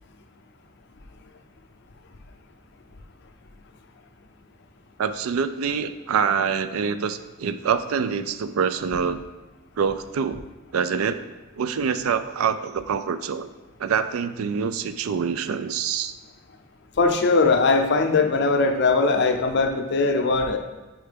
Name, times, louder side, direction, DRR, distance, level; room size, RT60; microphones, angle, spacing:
voice 1, 5.0-9.2 9.8-10.4 10.7-11.2 11.6-13.5 13.8-16.1, right 6 dB, 90° right, 12 dB, 0.4 m, -25 dB
voice 2, 17.0-20.6, left 3 dB, 55° left, 5 dB, 0.5 m, -20 dB
4.6 x 4.3 x 5.0 m, 1.1 s
head